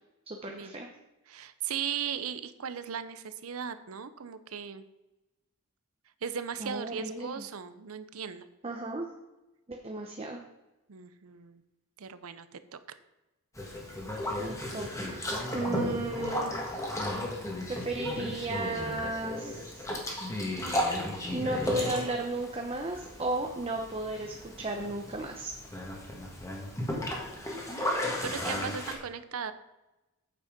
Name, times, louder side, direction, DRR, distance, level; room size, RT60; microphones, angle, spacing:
voice 1, 0.3-0.9 6.6-7.4 8.6-9.1 9.7-10.4 14.4-16.7 17.7-19.8 21.3-25.6, right 2 dB, 25° right, 2 dB, 0.8 m, -34 dB
voice 2, 1.3-4.8 6.2-8.5 10.9-11.6 12.0-12.8 27.8-29.5, right 7 dB, 80° right, 13 dB, 0.7 m, -37 dB
Boat Water vehicle, 13.6-28.9, left 1 dB, 15° left, 1.6 m, -35 dB
8.7 x 7.1 x 5.1 m, 0.99 s
head